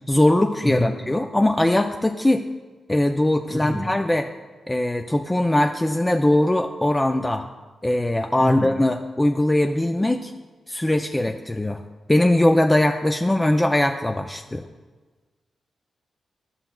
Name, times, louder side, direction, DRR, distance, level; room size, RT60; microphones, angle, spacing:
voice 1, 0.1-2.4 2.9-4.3 4.7-7.4 7.8-10.3 10.7-11.8 12.1-14.6, left 1 dB, 15° left, 5 dB, 0.4 m, -21 dB
voice 2, 0.6-0.9 3.5-3.9 8.4-8.7, left 1 dB, 15° right, 4 dB, 0.9 m, -26 dB
11.5 x 5.7 x 2.3 m, 1.3 s
supercardioid pair, 50°, 0 cm